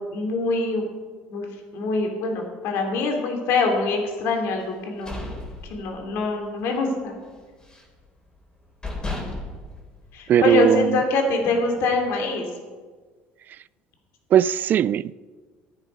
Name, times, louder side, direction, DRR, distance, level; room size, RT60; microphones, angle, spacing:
voice 1, 0.1-0.9 1.3-1.5 1.7-5.3 5.6-7.1 10.1-12.5, left 3 dB, 70° left, 2.8 m, -24 dB
sound 1, 4.7-6.3 6.6-6.9 7.2-8.0 8.5-8.6 8.8-10.6, left 2 dB, 20° left, 3.2 m, -34 dB
voice 2, 10.3-11.0 14.3-15.1, right 10 dB, 45° right, 0.3 m, -19 dB
14.0 x 10.0 x 5.3 m
cardioid pair, 115°, 4 cm